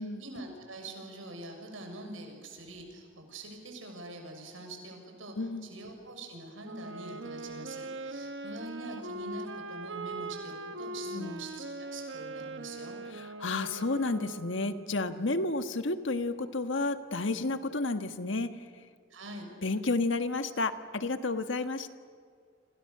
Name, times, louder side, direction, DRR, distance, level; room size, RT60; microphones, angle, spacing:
voice 1, 0.0-5.4 5.6-13.0 19.1-19.5, right 2 dB, 85° right, 3 dB, 6.6 m, -44 dB
voice 2, 5.4-5.7 11.1-11.4 13.1-18.7 19.6-21.9, left 3 dB, 70° left, 9 dB, 1.5 m, -31 dB
Wind instrument woodwind instrument, 6.6-14.9, right 2 dB, 65° right, 1.5 m, -41 dB
29.0 x 26.5 x 6.8 m, 2.1 s
head